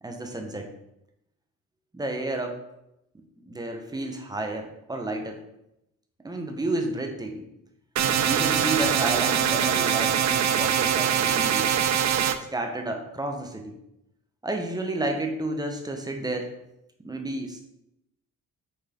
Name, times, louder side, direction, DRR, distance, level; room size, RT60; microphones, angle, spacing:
voice 1, 0.0-0.7 1.9-2.6 3.5-5.4 6.2-7.5 8.2-11.7 12.5-13.8 14.4-16.5 17.0-17.7, right 2 dB, 15° right, 3 dB, 1.1 m, -31 dB
sound 1, 8.0-12.4, right 9 dB, 65° right, 0.6 m, -23 dB
6.8 x 4.0 x 3.8 m, 0.83 s
cardioid pair, 90°, 30 cm